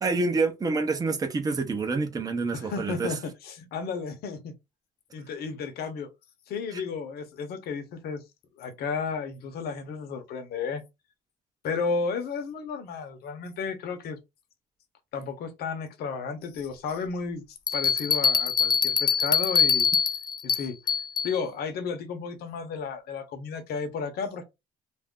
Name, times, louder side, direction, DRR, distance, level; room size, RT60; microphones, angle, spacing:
voice 1, 0.0-3.1 6.7-6.8, right 3 dB, 20° right, 0.6 m, -27 dB
voice 2, 2.5-4.5 5.1-6.1 6.5-8.2 8.6-10.8 11.6-14.2 15.1-19.9 20.4-20.7 21.2-24.4, left 5 dB, 70° left, 0.8 m, -33 dB
Bell, 17.7-21.3, left 6 dB, 25° left, 0.4 m, -24 dB
2.4 x 2.1 x 3.6 m
cardioid pair, 110°, 17 cm